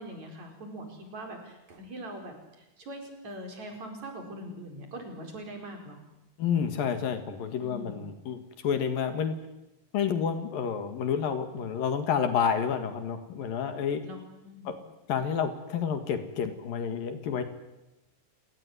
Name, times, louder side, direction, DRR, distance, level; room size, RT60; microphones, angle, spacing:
voice 1, 0.0-6.0 7.6-8.0 14.0-14.8, right 1 dB, 45° right, 3 dB, 5.8 m, -42 dB
voice 2, 6.4-9.3 9.9-14.0 14.7-14.8 15.1-17.4, left 7 dB, 65° left, 9 dB, 3.5 m, -29 dB
29.5 x 18.5 x 9.8 m, 0.98 s
omnidirectional pair, 4.4 m